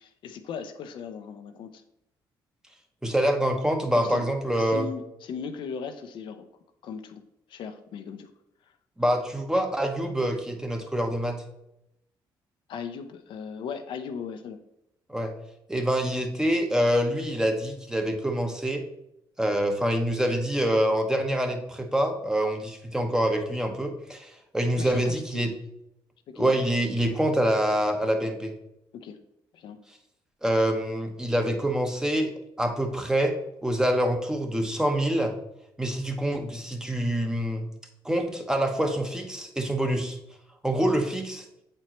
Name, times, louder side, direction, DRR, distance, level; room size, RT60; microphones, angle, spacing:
voice 1, 0.0-1.8 3.9-4.2 4.6-6.5 6.8-7.2 7.5-8.3 12.7-14.6 24.8-25.5 26.3-26.7 28.9-29.2 29.5-29.8, left 6 dB, 70° left, 7 dB, 0.5 m, -38 dB
voice 2, 3.0-4.9 9.0-11.4 15.1-15.3 15.7-18.8 19.4-25.5 26.4-28.5 30.4-32.3 32.6-33.4 33.6-35.3 35.8-37.7 38.0-40.2 40.6-41.4, right 1 dB, 5° right, 4 dB, 0.9 m, -26 dB
7.7 x 4.4 x 3.0 m, 0.84 s
cardioid pair, 85°, 9 cm